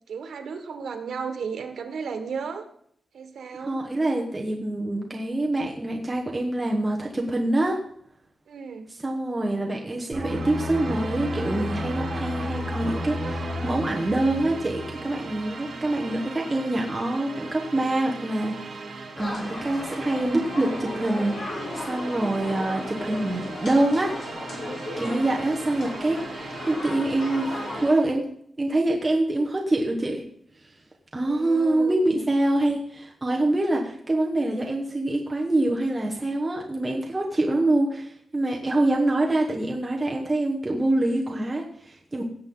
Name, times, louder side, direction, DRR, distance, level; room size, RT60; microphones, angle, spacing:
voice 1, 0.1-2.7 3.1-3.8 8.5-8.9 24.9-25.4 31.2-32.3, right 5 dB, 85° right, 7 dB, 1.5 m, -35 dB
voice 2, 3.6-7.8 9.0-18.5 19.2-24.1 25.0-27.6 27.8-28.2 28.6-30.2 31.1-42.2, right 2 dB, 15° right, -1 dB, 1.2 m, -25 dB
sound 1, 10.1-15.5 15.8-16.1, left 1 dB, 35° right, 5.8 m, -32 dB
sound 2, 10.2-28.2, right 4 dB, 55° right, 2.6 m, -39 dB
sound 3, 19.2-27.9, left 2 dB, 55° left, 3.6 m, -36 dB
17.0 x 7.5 x 3.9 m, 0.65 s
wide cardioid pair, 165°, 0 cm